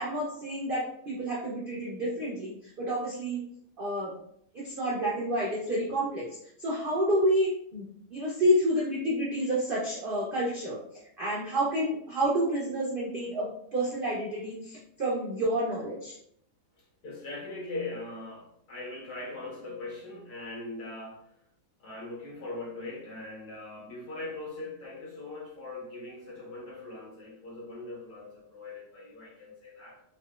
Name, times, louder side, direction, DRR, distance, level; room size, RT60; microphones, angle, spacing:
voice 1, 0.0-3.5 3.8-4.1 4.5-6.2 6.6-7.9 8.1-10.8 11.2-16.2, equal, 75° right, -5 dB, 0.5 m, -29 dB
voice 2, 16.8-21.4 21.8-30.0, left 2 dB, 70° left, -3 dB, 1.5 m, -41 dB
3.9 x 2.1 x 2.3 m, 0.70 s
omnidirectional pair, 1.8 m